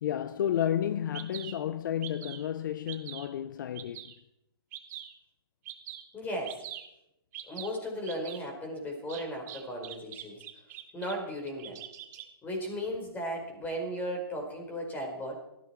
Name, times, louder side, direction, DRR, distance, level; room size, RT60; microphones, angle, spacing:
voice 1, 0.0-4.1, left 10 dB, 55° left, 0.7 m, -31 dB
Bird vocalization bird call bird song, 0.7-0.8 1.1-1.5 2.0-2.5 2.9-3.3 3.7-4.1 4.7-5.1 5.6-6.0 6.4-6.8 7.3-7.7 8.1-8.4 9.1-11.1 11.5-12.3, right 13 dB, 40° right, 3.9 m, -43 dB
voice 2, 6.1-6.6 7.5-10.4 10.9-11.8 12.4-15.4, equal, 15° left, 5.2 m, -36 dB
19.5 x 15.0 x 4.6 m
hypercardioid pair, 145°, 13 cm